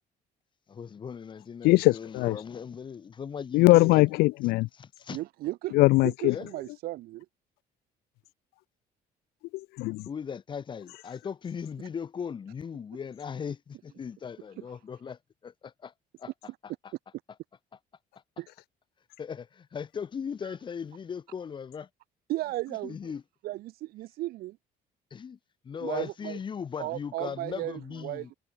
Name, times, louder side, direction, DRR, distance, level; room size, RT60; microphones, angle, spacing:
voice 1, 0.7-4.1 4.7-5.2 6.2-6.5 10.1-15.9 16.2-16.3 16.8-16.9 19.2-21.9 22.7-23.2 25.1-25.4 25.6-28.3, left 7 dB, 30° left, 7.7 m, -38 dB
voice 2, 1.6-2.3 3.5-4.7 5.7-6.3 9.5-10.0, left 21 dB, 80° left, 0.4 m, -21 dB
voice 3, 5.1-7.2 18.4-18.5 22.3-23.0 23.4-24.6 25.8-26.4 26.8-28.3, right 17 dB, 70° right, 1.5 m, -35 dB
cardioid pair, 165°, 16 cm